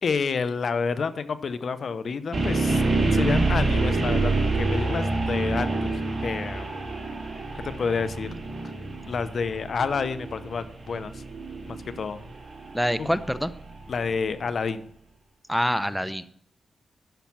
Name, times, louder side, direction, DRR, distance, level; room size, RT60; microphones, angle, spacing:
voice 1, 0.0-2.8 3.1-5.9 6.2-6.9 7.6-8.3 9.1-11.2 11.7-12.2 13.0-13.1 13.9-14.9, left 5 dB, 65° left, 13 dB, 0.8 m, -29 dB
sound 1, 2.3-14.3, right 2 dB, 45° right, 3.9 m, -27 dB
voice 2, 12.7-13.5 15.5-16.2, equal, ahead, 13 dB, 0.7 m, -25 dB
10.5 x 6.9 x 6.1 m, 0.64 s
cardioid pair, 65°, 0 cm